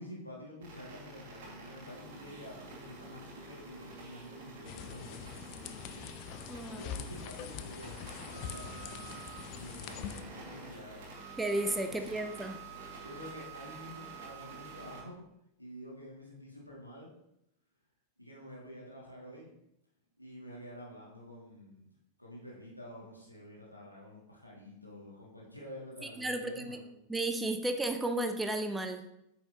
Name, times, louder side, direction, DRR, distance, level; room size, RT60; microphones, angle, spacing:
voice 1, 0.0-6.1 6.6-11.1 11.9-12.1 13.0-15.2 15.6-17.1 18.2-19.5 20.2-21.9 22.2-26.9, equal, 85° left, -4 dB, 2.1 m, -49 dB
sound 1, 0.6-15.0, right 3 dB, 55° right, 2.1 m, -48 dB
sound 2, 4.7-10.2, left 9 dB, 40° left, 0.5 m, -44 dB
voice 2, 6.5-6.8 11.4-12.6 26.2-26.8 27.1-29.0, right 2 dB, 10° right, 7 dB, 0.6 m, -33 dB
8.7 x 5.6 x 2.9 m, 0.81 s
figure-of-eight pair, 90°, 0 cm